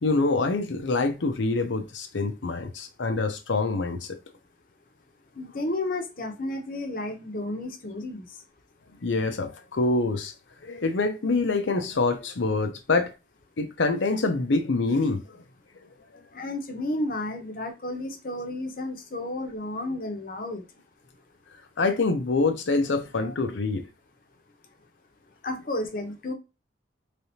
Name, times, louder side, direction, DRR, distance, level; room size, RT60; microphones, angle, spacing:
voice 1, 0.0-4.2 9.0-10.3 10.6-13.1 13.6-15.4 21.8-23.9, left 3 dB, 85° left, 0.7 m, -25 dB
voice 2, 5.4-8.2 16.4-20.6 25.4-26.3, left 1 dB, 50° left, 0.8 m, -32 dB
3.4 x 3.4 x 2.8 m
head